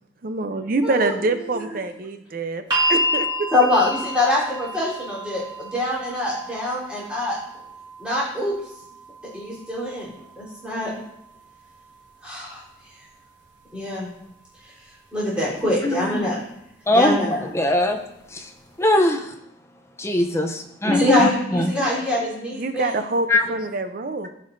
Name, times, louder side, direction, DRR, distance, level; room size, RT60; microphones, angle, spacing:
voice 1, 0.2-2.6 2.9-3.3 22.5-24.3, right 3 dB, 50° right, 9 dB, 0.6 m, -25 dB
voice 2, 0.8-1.1 1.5-1.6 3.5-7.4 8.0-8.6 9.3-10.1 10.4-10.9 12.2-12.6 13.7-14.1 15.1-16.4 16.9-17.5 20.8-22.9, left 1 dB, 5° right, -8 dB, 3.6 m, -24 dB
sound 1, 2.7-14.8 15.9-16.0, equal, 20° right, 1.7 m, -32 dB
voice 3, 15.8-16.3 16.9-18.0 18.8-19.2 20.0-21.7 23.3-23.4, left 1 dB, 15° left, 3 dB, 0.6 m, -21 dB
14.5 x 5.4 x 2.6 m, 0.79 s
head